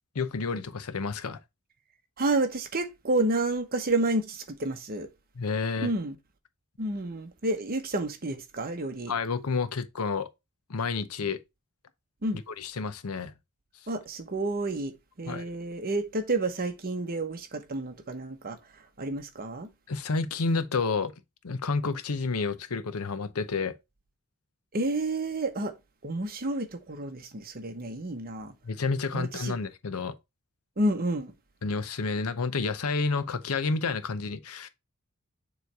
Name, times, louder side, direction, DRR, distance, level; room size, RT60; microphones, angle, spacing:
voice 1, 0.1-1.4 5.4-5.9 9.1-10.3 10.7-11.4 12.3-13.3 15.3-15.5 19.9-21.1 21.4-23.7 28.6-30.1 31.6-34.7, left 4 dB, 80° left, 0.7 m, -30 dB
voice 2, 2.2-5.1 5.8-6.2 6.8-9.1 12.2-12.4 13.9-18.6 19.0-19.7 24.7-25.7 26.0-28.5 29.1-29.6 30.8-31.3, right 2 dB, 45° right, 1.0 m, -30 dB
7.0 x 3.2 x 4.6 m
head